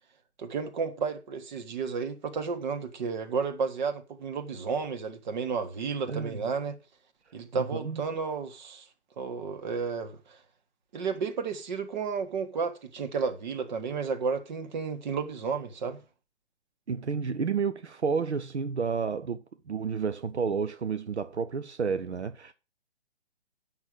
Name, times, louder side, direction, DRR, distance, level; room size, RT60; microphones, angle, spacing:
voice 1, 0.4-6.7 7.3-8.9 9.2-10.4 10.9-16.0, right 5 dB, 40° right, 1.6 m, -32 dB
voice 2, 6.1-6.4 7.5-8.0 16.9-22.5, right 5 dB, 75° right, 0.8 m, -31 dB
8.8 x 6.0 x 6.1 m
figure-of-eight pair, 130°, 34 cm